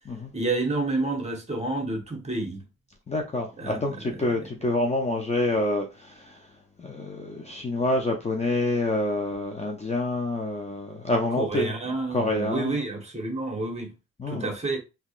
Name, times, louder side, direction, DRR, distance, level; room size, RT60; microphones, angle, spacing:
voice 1, 0.3-2.6 3.6-4.5 11.4-13.9 14.3-14.8, right 2 dB, 20° right, 1.2 m, -29 dB
voice 2, 3.1-6.4 6.8-11.7 12.1-12.8 14.2-14.5, left 2 dB, 20° left, 0.6 m, -27 dB
3.5 x 2.8 x 2.4 m
cardioid pair, 90°, 30 cm